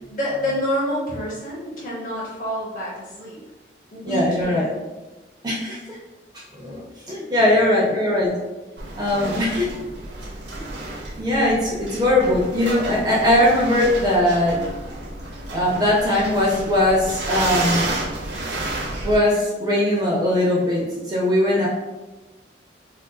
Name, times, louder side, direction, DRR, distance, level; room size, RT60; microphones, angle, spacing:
voice 1, 0.1-3.4 3.9-4.8 9.1-9.5, equal, 45° left, -5 dB, 0.7 m, -28 dB
voice 2, 4.0-4.7 5.4-6.0 6.3-8.3 9.0-9.7 11.2-14.6 15.5-17.9 19.0-21.7, left 1 dB, 20° right, -4 dB, 0.5 m, -20 dB
sound 1, 8.8-19.2, right 2 dB, 75° right, 0.6 m, -31 dB
3.8 x 2.5 x 2.2 m, 1.2 s
head